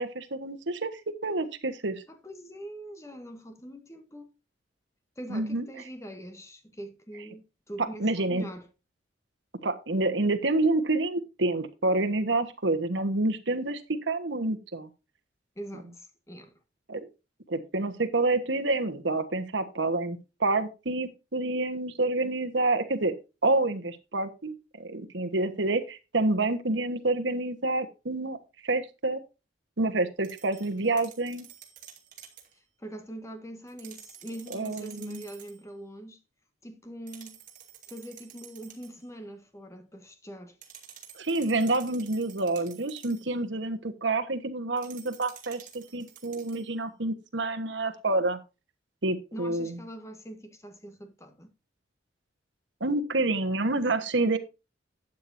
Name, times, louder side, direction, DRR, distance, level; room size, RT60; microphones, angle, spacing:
voice 1, 0.0-2.0 5.3-5.7 8.0-8.4 9.6-13.8 14.1-14.9 16.9-17.1 17.5-23.1 23.4-28.4 28.6-29.2 29.8-31.5 34.5-35.2 41.1-48.4 49.0-49.8 52.8-54.4, right 2 dB, 75° right, 1.3 m, -28 dB
voice 2, 2.1-4.3 5.1-8.7 15.5-16.6 32.5-36.2 36.6-37.4 37.9-40.6 49.3-51.5, right 1 dB, 15° left, 1.5 m, -43 dB
sound 1, 30.2-32.5 33.7-35.6 37.1-39.0 40.6-43.3 44.8-46.7, right 9 dB, 45° right, 2.4 m, -50 dB
12.0 x 8.7 x 2.7 m
head